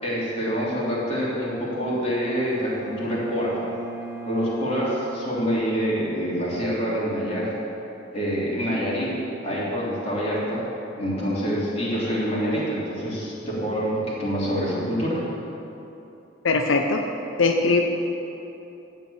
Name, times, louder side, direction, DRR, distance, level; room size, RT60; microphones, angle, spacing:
voice 1, 0.0-3.6 4.2-7.5 8.1-9.1 9.4-10.6 10.9-15.2, equal, 30° left, -7 dB, 3.0 m, -26 dB
Bowed string instrument, 2.4-6.3, right 3 dB, 20° right, 1.6 m, -38 dB
voice 2, 16.4-17.1 17.4-17.8, left 3 dB, 90° left, 4 dB, 0.6 m, -20 dB
13.0 x 4.6 x 8.6 m, 3.0 s
head